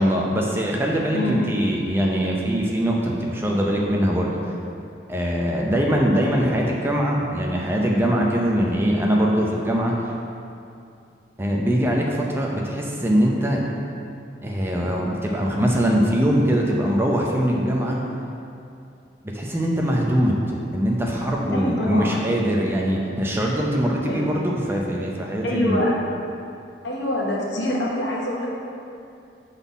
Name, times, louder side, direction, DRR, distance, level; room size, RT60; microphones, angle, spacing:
voice 1, 0.0-4.5 5.1-9.9 11.4-13.6 14.4-18.0 19.3-25.8, equal, 10° right, -2 dB, 0.5 m, -22 dB
voice 2, 1.1-1.5 21.5-22.2 24.1-24.3 25.4-26.0 26.8-28.5, left 1 dB, 70° left, -4 dB, 1.3 m, -25 dB
7.0 x 4.1 x 5.4 m, 2.6 s
head